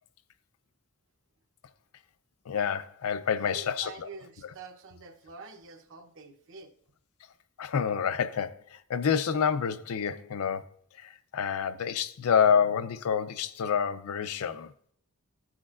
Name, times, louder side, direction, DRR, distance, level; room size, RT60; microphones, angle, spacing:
voice 1, 2.5-3.9 7.6-14.7, left 7 dB, 70° left, 0.5 m, -28 dB
voice 2, 3.4-6.7, right 4 dB, 60° right, 0.9 m, -47 dB
14.5 x 6.2 x 2.5 m
head